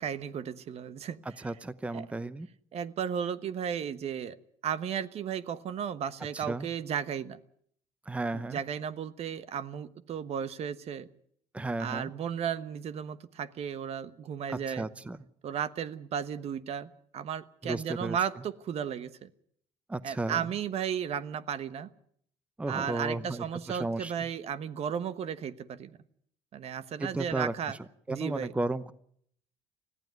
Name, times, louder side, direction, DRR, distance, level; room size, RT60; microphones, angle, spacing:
voice 1, 0.0-1.2 1.9-2.0 2.7-4.4 4.6-7.4 8.3-11.1 11.8-14.9 15.4-19.3 20.0-21.9 22.7-26.0 26.5-27.8 28.1-28.5, right 8 dB, 55° right, 14 dB, 1.2 m, -34 dB
voice 2, 1.2-2.5 6.3-6.7 8.1-8.6 11.5-12.1 14.5-15.2 17.6-18.2 19.9-20.5 22.6-24.3 27.0-27.8 28.1-28.9, right 2 dB, 10° right, 15 dB, 0.8 m, -34 dB
20.0 x 15.0 x 9.4 m, 0.66 s
cardioid pair, 100°, 13 cm